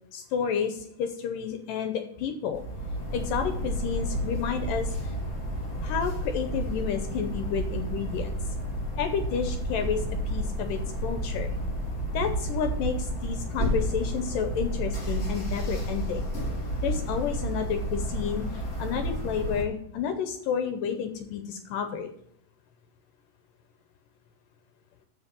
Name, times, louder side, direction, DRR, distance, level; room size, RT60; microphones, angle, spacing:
voice 1, 0.1-2.6 3.1-4.9 5.8-8.4 9.0-11.5 12.1-16.3 16.8-18.5 18.8-22.1, left 7 dB, 75° left, 7 dB, 2.1 m, -31 dB
sound 1, 2.5-19.6, right 1 dB, 25° left, 2.5 m, -31 dB
7.7 x 6.2 x 7.5 m, 0.73 s
omnidirectional pair, 4.6 m